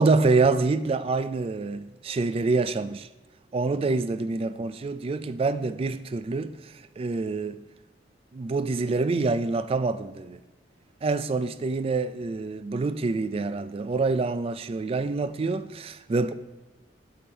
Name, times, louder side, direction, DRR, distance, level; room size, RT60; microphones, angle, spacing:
voice 1, 0.0-3.1 3.5-6.6 7.0-7.6 8.3-10.4 11.0-16.3, right 3 dB, 30° right, 0.3 m, -26 dB
6.9 x 5.2 x 4.4 m
head